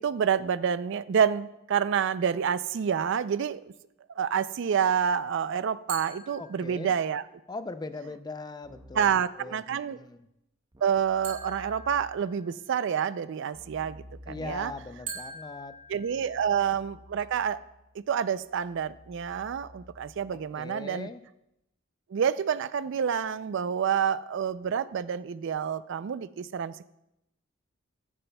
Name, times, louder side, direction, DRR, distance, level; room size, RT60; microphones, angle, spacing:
voice 1, 0.0-3.7 4.2-7.2 8.9-10.0 10.8-14.7 15.9-17.6 18.1-21.1 22.1-26.9, right 7 dB, 65° right, 16 dB, 0.4 m, -28 dB
sound 1, 5.9-7.2 11.2-12.8 15.1-16.8, right 4 dB, 40° right, 2.4 m, -43 dB
voice 2, 6.4-7.0 7.5-10.3 14.3-16.4 20.6-21.2, left 3 dB, 20° left, 11 dB, 0.4 m, -41 dB
Keyboard (musical), 8.6-9.3 10.7-12.3 13.5-20.6, equal, 20° right, 0.7 m, -52 dB
14.5 x 9.8 x 2.2 m, 0.84 s
head